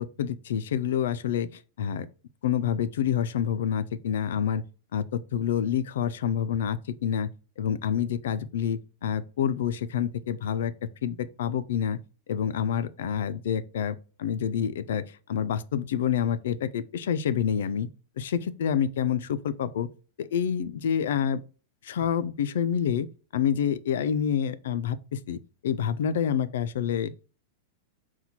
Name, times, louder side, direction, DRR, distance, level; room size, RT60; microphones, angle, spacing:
voice 1, 0.0-1.5 1.8-2.1 2.4-4.6 4.9-7.3 7.6-12.0 12.3-17.9 18.2-19.9 20.2-21.4 21.8-23.1 23.3-27.1, left 8 dB, 75° left, 0.3 m, -28 dB
4.3 x 2.2 x 4.1 m
supercardioid pair, 175°, 0 cm